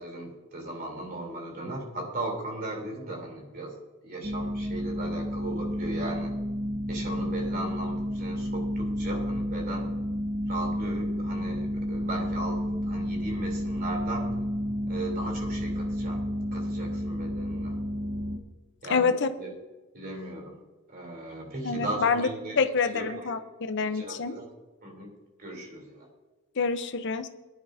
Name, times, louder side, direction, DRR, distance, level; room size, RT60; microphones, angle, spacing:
voice 1, 0.0-3.7 4.0-6.3 6.9-10.0 10.5-14.4 14.9-16.2 16.5-17.8 18.8-19.5 19.9-20.6 20.9-22.6 22.9-23.3 23.6-24.5 24.8-25.1 25.4-26.1, right 2 dB, 45° right, 0 dB, 3.3 m, -37 dB
sound 1, 4.2-18.4, equal, 25° right, 0.9 m, -31 dB
voice 2, 18.9-19.3 21.6-22.3 22.6-24.3 26.6-27.3, left 5 dB, 55° left, 8 dB, 0.7 m, -26 dB
21.0 x 10.0 x 2.7 m, 1.2 s
head